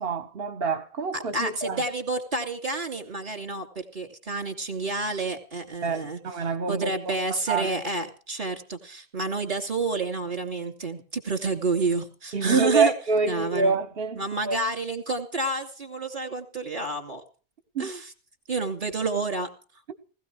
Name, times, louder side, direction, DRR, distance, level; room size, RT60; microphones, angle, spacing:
voice 1, 0.0-1.8 5.8-7.1 7.5-7.8 12.3-14.6 17.7-17.9, right 4 dB, 60° right, 1.5 m, -26 dB
voice 2, 1.1-6.2 6.7-12.9 13.3-13.8 14.2-17.2 17.8-18.1 18.5-19.5, right 3 dB, 45° right, 3.1 m, -29 dB
19.0 x 14.5 x 4.7 m
omnidirectional pair, 1.1 m